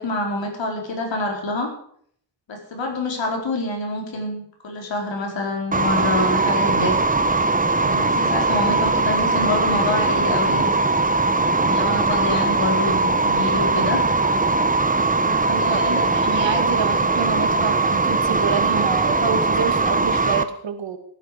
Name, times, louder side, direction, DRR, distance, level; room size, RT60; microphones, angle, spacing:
voice 1, 0.0-1.7 2.5-6.9 7.7-10.8 11.6-14.0 15.2-16.1, left 2 dB, 85° left, 1 dB, 4.8 m, -26 dB
sound 1, 5.7-20.4, right 3 dB, 20° right, 0.9 m, -20 dB
voice 2, 15.5-21.0, right 6 dB, 85° right, 7 dB, 2.4 m, -27 dB
15.5 x 14.5 x 5.2 m, 0.62 s
wide cardioid pair, 140°, 44 cm